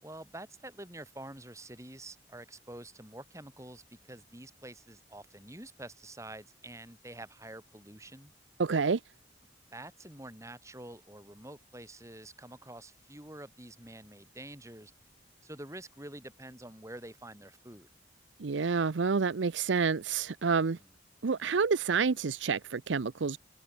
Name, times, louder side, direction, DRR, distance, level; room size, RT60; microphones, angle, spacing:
voice 1, 0.0-8.3 9.7-14.9 15.4-17.9 20.7-20.8, right 1 dB, 15° right, 4.3 m, -47 dB
voice 2, 8.6-9.0 18.4-20.8 21.2-23.4, right 5 dB, 80° right, 0.6 m, -28 dB
open air
head